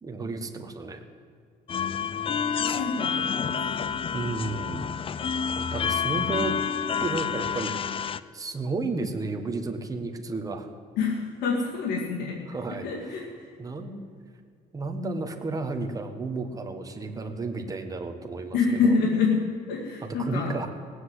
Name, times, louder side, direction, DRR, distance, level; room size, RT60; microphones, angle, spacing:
voice 1, 0.0-1.0 4.1-4.9 5.6-6.6 7.0-7.7 8.3-10.7 12.5-12.9 13.6-14.0 14.7-18.9 20.0-20.7, right 3 dB, 20° right, 4 dB, 1.5 m, -32 dB
sound 1, 1.7-8.2, left 6 dB, 30° left, 0.5 m, -29 dB
voice 2, 2.6-3.9 11.0-12.4 12.8-13.2 18.5-19.4 19.7-20.5, left 5 dB, 90° left, -1 dB, 2.2 m, -27 dB
18.5 x 8.2 x 8.1 m, 2.2 s
cardioid pair, 110°, 17 cm